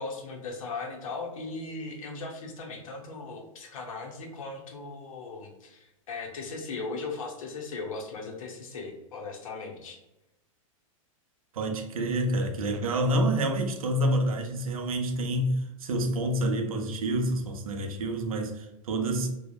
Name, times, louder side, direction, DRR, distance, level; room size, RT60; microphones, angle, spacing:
voice 1, 0.0-10.0, left 3 dB, 70° left, 0.7 m, -38 dB
voice 2, 11.5-19.3, right 1 dB, 80° right, 0.5 m, -28 dB
2.6 x 2.0 x 2.3 m
hypercardioid pair, 105°, 18 cm